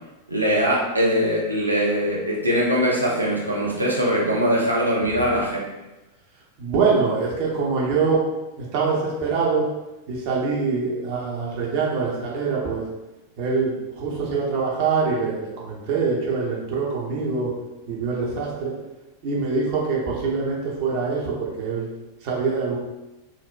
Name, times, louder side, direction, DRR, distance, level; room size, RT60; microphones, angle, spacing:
voice 1, 0.3-5.6, equal, 85° right, -4 dB, 0.6 m, -22 dB
voice 2, 5.1-5.4 6.6-8.2 8.6-9.7 10.1-12.8 13.4-17.5 17.9-18.7 19.2-21.9 22.2-22.8, right 4 dB, 45° right, -4 dB, 0.8 m, -24 dB
3.9 x 2.1 x 2.3 m, 1.0 s
figure-of-eight pair, 90°, 0 cm